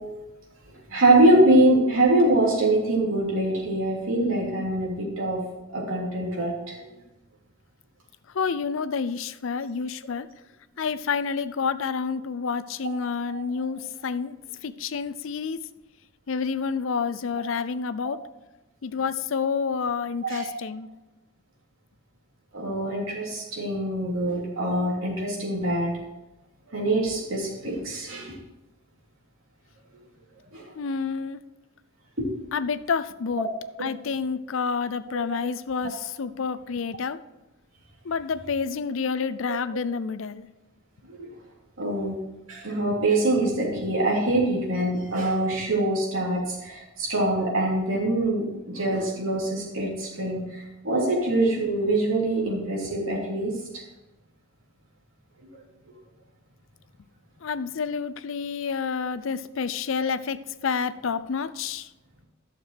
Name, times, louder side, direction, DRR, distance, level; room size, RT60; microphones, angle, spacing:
voice 1, 0.9-5.4 5.7-6.8 13.3-13.4 20.2-20.4 22.5-25.9 26.7-28.3 30.5-30.6 32.2-32.6 35.1-35.2 41.2-41.3 41.8-42.1 42.5-53.5, right 1 dB, 75° right, -4 dB, 3.2 m, -24 dB
voice 2, 8.3-10.3 10.8-14.4 14.6-15.6 16.3-18.2 18.8-20.9 30.8-31.4 32.5-33.5 33.8-37.2 38.1-40.5 57.4-61.9, left 5 dB, 70° left, 13 dB, 0.5 m, -29 dB
12.0 x 6.7 x 4.5 m, 1.0 s
head